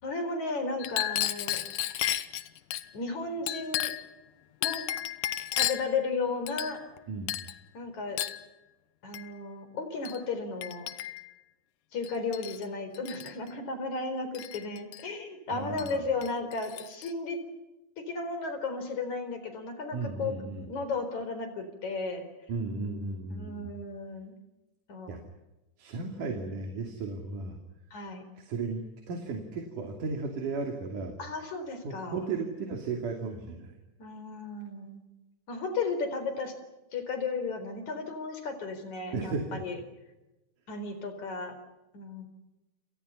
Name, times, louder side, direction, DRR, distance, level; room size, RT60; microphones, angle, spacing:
voice 1, 0.0-1.6 2.9-3.9 4.6-4.9 5.5-6.8 7.7-8.2 9.0-10.9 11.9-17.4 18.0-20.4 20.7-22.3 23.3-24.3 24.9-25.2 27.9-28.2 31.2-32.3 34.0-35.0 35.5-36.5 36.9-39.8 40.7-41.6 41.9-42.3, left 4 dB, 65° left, 9 dB, 5.7 m, -34 dB
Chink clink, 0.8-2.9 3.5-4.1 4.6-5.9 6.5-7.0 7.3-7.6 8.2-8.4 9.1-9.3 10.1-10.2 10.6-11.3 12.0-12.6 12.9-13.3 14.3-15.0 15.8-15.9 16.2-17.1, left 12 dB, 90° left, 2.7 m, -33 dB
voice 2, 15.5-16.0 19.9-20.7 22.5-23.7 25.1-25.2 25.8-27.6 28.4-31.1 31.8-33.7 39.1-39.6, right 4 dB, 85° right, 3 dB, 4.3 m, -35 dB
30.0 x 28.0 x 5.7 m, 1.0 s
omnidirectional pair, 3.6 m